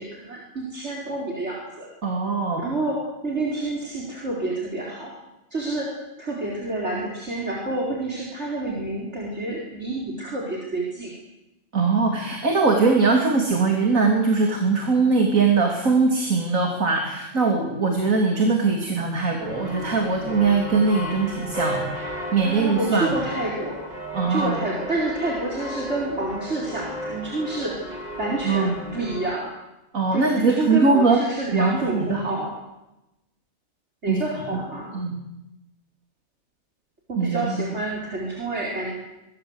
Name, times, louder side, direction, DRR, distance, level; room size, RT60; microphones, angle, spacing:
voice 1, 0.0-1.9 2.6-5.1 5.5-5.9 6.2-11.1 22.4-23.9 24.2-27.7 28.2-29.5 30.1-32.5 34.0-34.9 37.1-38.9, right 2 dB, 55° right, -2 dB, 4.7 m, -28 dB
voice 2, 2.0-2.6 11.7-23.2 24.1-24.6 28.4-28.7 29.9-31.2 31.5-32.2 34.1-34.2 34.5-34.6 34.9-35.2 37.2-37.6, right 4 dB, 90° right, 2 dB, 3.3 m, -21 dB
sound 1, 19.4-29.3, equal, 30° right, 4.2 m, -34 dB
24.0 x 23.0 x 8.1 m, 0.95 s
omnidirectional pair, 1.4 m